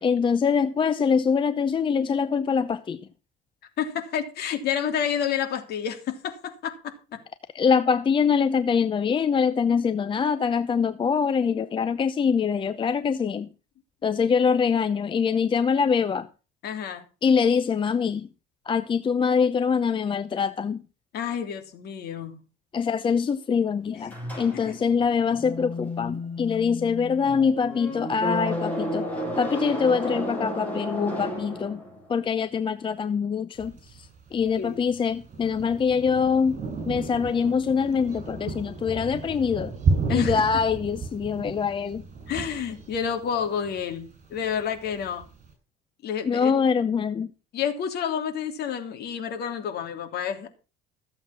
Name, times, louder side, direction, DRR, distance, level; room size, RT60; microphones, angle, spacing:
voice 1, 0.0-3.0 7.5-13.5 14.0-16.3 17.2-18.3 18.7-20.8 22.7-29.1 29.4-31.8 32.1-36.6 36.9-39.7 40.1-42.0 46.2-47.3, left 6 dB, 25° left, 0.7 m, -24 dB
voice 2, 3.8-7.2 16.6-17.0 21.1-22.4 24.6-24.8 34.6-34.8 40.1-40.4 42.3-45.3 46.0-46.5 47.5-50.5, left 8 dB, 55° left, 3.1 m, -29 dB
sound 1, 24.1-32.2, left 1 dB, 10° left, 6.8 m, -32 dB
Thunder, 33.6-45.5, right 4 dB, 40° right, 7.5 m, -33 dB
15.0 x 7.8 x 5.8 m
cardioid pair, 125°, 20 cm